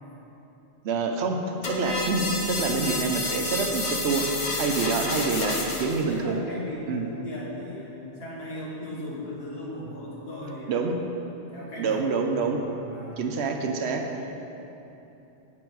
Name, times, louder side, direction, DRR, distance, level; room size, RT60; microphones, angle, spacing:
voice 1, 0.8-1.4 1.7-4.3 4.6-6.4 6.9-7.1 10.7-11.0 11.8-12.6 13.2-14.1, right 4 dB, 75° right, 4 dB, 1.0 m, -27 dB
sound 1, 1.6-6.0, left 2 dB, 45° left, 1.0 m, -29 dB
voice 2, 4.7-10.8 11.5-12.1 12.4-13.2 14.2-14.3, left 1 dB, 65° left, -4 dB, 1.8 m, -38 dB
7.7 x 7.2 x 4.6 m, 3.0 s
omnidirectional pair, 1.1 m